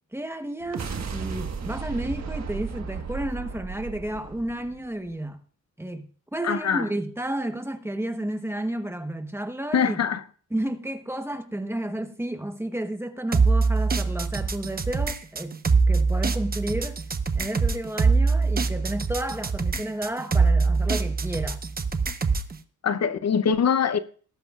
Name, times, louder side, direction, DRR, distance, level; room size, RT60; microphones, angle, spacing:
voice 1, 0.1-5.4 5.8-10.0 10.5-15.6 15.9-17.0 17.3-21.6, right 1 dB, 10° right, 1.1 m, -32 dB
sound 1, 0.6-5.1, right 5 dB, 55° right, 1.5 m, -34 dB
voice 2, 6.4-6.9 9.7-10.2 22.8-24.0, left 7 dB, 55° left, 0.8 m, -23 dB
sound 2, 13.3-22.5, right 4 dB, 30° right, 0.9 m, -23 dB
19.5 x 11.0 x 2.5 m
wide cardioid pair, 135°, 31 cm